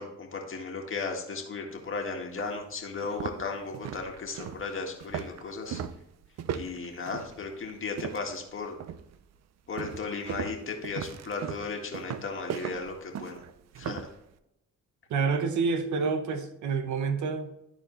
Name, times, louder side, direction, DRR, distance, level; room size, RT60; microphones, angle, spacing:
voice 1, 0.0-5.8 6.5-8.8 9.7-13.4 13.8-14.0, left 4 dB, 45° left, 1 dB, 1.8 m, -35 dB
sound 1, 1.8-1.9 2.4-2.5 2.9-8.4 8.8-9.2 9.8-14.1, right 9 dB, 60° right, 0.6 m, -38 dB
voice 2, 15.1-17.7, right 5 dB, 75° right, 8 dB, 1.0 m, -28 dB
13.0 x 4.4 x 3.1 m, 0.84 s
cardioid pair, 90°, 30 cm